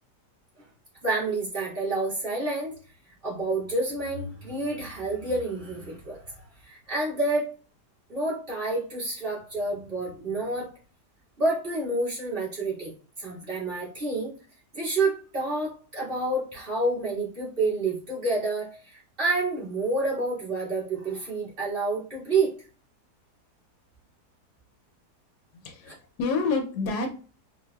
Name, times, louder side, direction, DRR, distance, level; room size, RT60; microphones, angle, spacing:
voice 1, 1.0-2.7 3.2-6.2 6.6-7.5 8.1-10.7 11.4-12.9 13.2-14.3 14.7-22.5 25.9-26.0, right 2 dB, 35° right, -8 dB, 1.8 m, -28 dB
voice 2, 25.6-27.1, left 4 dB, 75° left, 4 dB, 1.1 m, -28 dB
4.6 x 2.2 x 2.2 m, 0.39 s
omnidirectional pair, 1.8 m